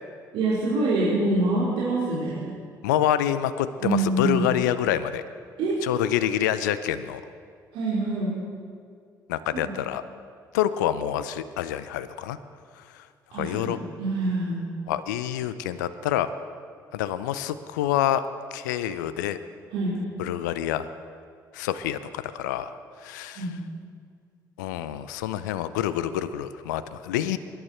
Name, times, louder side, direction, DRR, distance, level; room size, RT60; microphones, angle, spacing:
voice 1, 0.3-2.5 3.8-4.5 5.6-5.7 7.7-8.3 9.6-9.7 13.3-14.6 19.7-20.0 23.3-23.6, right 2 dB, 65° right, -8 dB, 4.3 m, -25 dB
voice 2, 2.8-5.2 5.8-7.2 9.3-10.0 10.5-12.4 12.8-13.1 13.3-13.8 14.9-16.3 16.9-18.2 18.5-19.4 20.2-20.9 21.5-22.7 23.0-23.5 24.6-27.4, left 11 dB, 80° left, 13 dB, 0.6 m, -27 dB
24.5 x 11.5 x 4.4 m, 2.2 s
hypercardioid pair, 50°, 10 cm